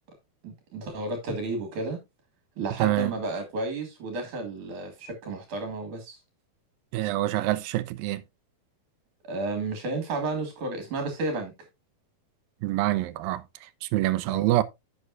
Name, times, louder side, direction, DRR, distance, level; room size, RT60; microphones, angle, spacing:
voice 1, 0.4-2.0 2.6-6.2 9.2-11.5 14.3-14.4, right 2 dB, 60° right, 3.1 m, -32 dB
voice 2, 2.8-3.1 6.9-8.2 12.6-13.4 13.8-14.6, right 16 dB, 80° right, 2.3 m, -25 dB
11.0 x 8.0 x 2.5 m
omnidirectional pair, 4.3 m